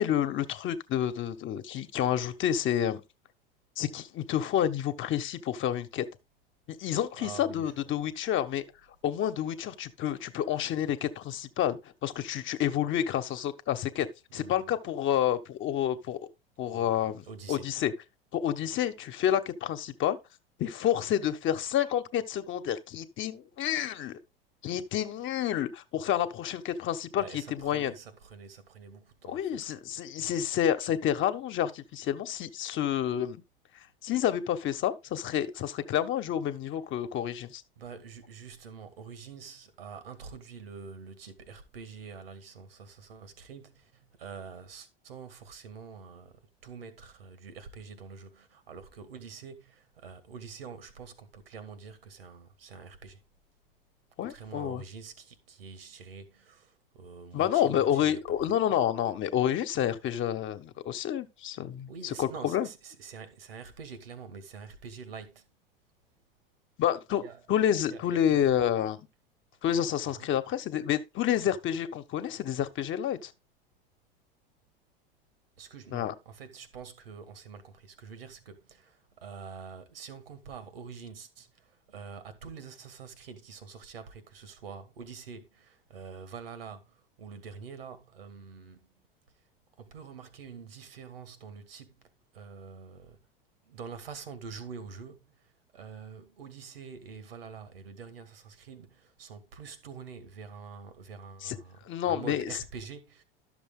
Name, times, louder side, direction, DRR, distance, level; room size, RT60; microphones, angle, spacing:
voice 1, 0.0-3.0 3.8-6.1 6.8-8.6 9.0-14.1 14.3-16.2 16.6-17.9 18.3-20.2 20.6-24.2 24.6-27.9 29.2-33.4 34.0-37.6 54.2-54.8 57.3-62.7 66.8-67.2 67.5-69.0 69.6-73.3 75.9-76.1 101.4-101.6 101.8-102.5, left 10 dB, 40° left, 1.3 m, -29 dB
voice 2, 7.2-7.7 14.3-14.7 16.7-17.7 27.1-29.7 37.8-53.2 54.3-58.2 61.9-65.4 67.2-67.4 67.9-68.6 70.1-70.3 75.6-88.9 89.8-92.1 92.3-93.2 93.7-101.8 102.1-103.2, right 6 dB, 80° right, 2.1 m, -46 dB
12.0 x 6.9 x 3.8 m
figure-of-eight pair, 75°, 29 cm